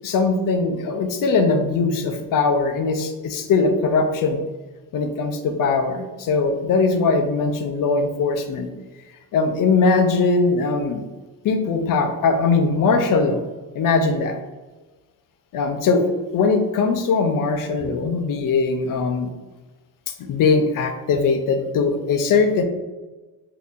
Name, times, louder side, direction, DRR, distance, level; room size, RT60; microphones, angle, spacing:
voice 1, 0.0-4.4 4.9-8.7 9.3-11.0 11.4-13.4 13.7-14.4 15.5-19.3 20.2-22.6, left 4 dB, 55° left, 6 dB, 0.5 m, -20 dB
3.7 x 2.8 x 2.5 m, 1.2 s
cardioid pair, 120°, 41 cm